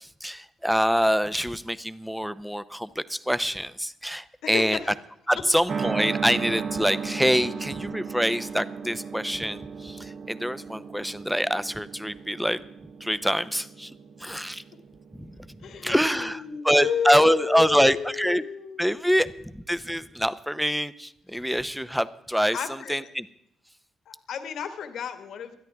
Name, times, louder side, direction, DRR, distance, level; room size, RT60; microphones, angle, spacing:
voice 1, 0.0-4.8 5.3-12.6 13.0-13.9 14.2-14.6 15.2-15.6 15.8-18.4 18.8-23.3, equal, ahead, 14 dB, 0.7 m, -25 dB
voice 2, 4.4-4.9 15.6-19.4 22.5-22.9 24.0-25.6, left 7 dB, 70° left, 8 dB, 1.7 m, -32 dB
sound 1, 5.7-16.5, right 6 dB, 50° right, 0.8 m, -36 dB
20.0 x 13.0 x 3.5 m, 0.76 s
cardioid pair, 90°, 0 cm